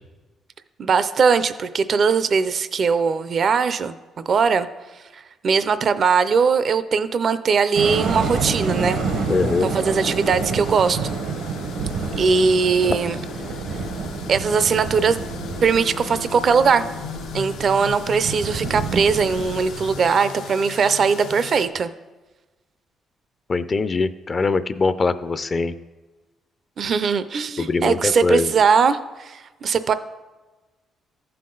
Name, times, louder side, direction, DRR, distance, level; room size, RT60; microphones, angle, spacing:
voice 1, 0.8-4.7 5.1-9.0 9.6-11.2 12.2-13.2 14.3-15.2 15.6-16.8 17.3-21.9 26.8-29.9, right 5 dB, 50° right, 13 dB, 0.5 m, -20 dB
sound 1, 7.7-20.0, right 4 dB, 80° right, 1.1 m, -29 dB
sound 2, 7.8-21.7, left 6 dB, 90° left, 0.8 m, -38 dB
voice 2, 9.3-9.7 23.5-25.7 27.6-28.5, left 4 dB, 35° left, 13 dB, 0.4 m, -22 dB
14.0 x 5.6 x 3.9 m, 1.2 s
cardioid pair, 90°, 0 cm